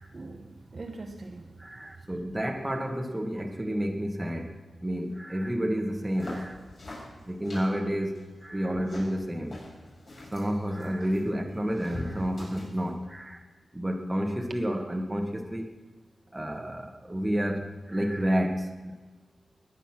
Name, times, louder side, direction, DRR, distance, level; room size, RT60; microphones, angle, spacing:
voice 1, 0.0-1.6 2.0-2.4, right 3 dB, 35° right, 3 dB, 1.0 m, -43 dB
voice 2, 1.6-6.6 7.2-9.6 10.3-13.4 13.7-15.7 16.3-18.9, equal, 10° right, 3 dB, 1.6 m, -30 dB
sound 1, 5.9-12.9, left 1 dB, 45° left, 6.5 m, -45 dB
20.5 x 9.4 x 6.1 m, 1.2 s
wide cardioid pair, 140°, 0 cm